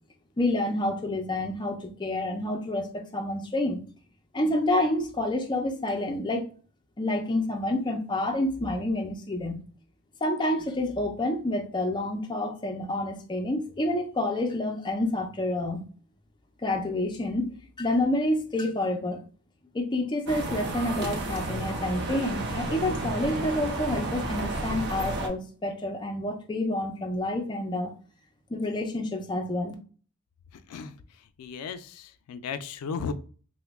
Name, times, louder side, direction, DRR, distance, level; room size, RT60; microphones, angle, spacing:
voice 1, 0.4-3.8 4.3-6.5 7.0-9.6 10.2-15.8 16.6-19.2 19.7-27.9 28.5-29.7, left 1 dB, 20° left, 0.4 m, -28 dB
sound 1, 20.3-25.3, right 2 dB, 50° right, 0.5 m, -32 dB
voice 2, 30.5-31.0 31.4-33.1, left 6 dB, 90° left, 0.3 m, -35 dB
2.9 x 2.1 x 3.4 m
head